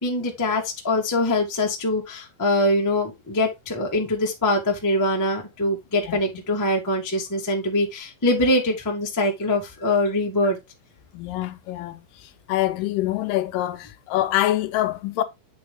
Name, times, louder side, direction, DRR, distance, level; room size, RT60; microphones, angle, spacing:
voice 1, 0.0-10.6, left 1 dB, 15° left, 0.6 m, -23 dB
voice 2, 11.1-15.2, left 14 dB, 85° left, 2.2 m, -25 dB
8.6 x 4.2 x 3.6 m
omnidirectional pair, 4.0 m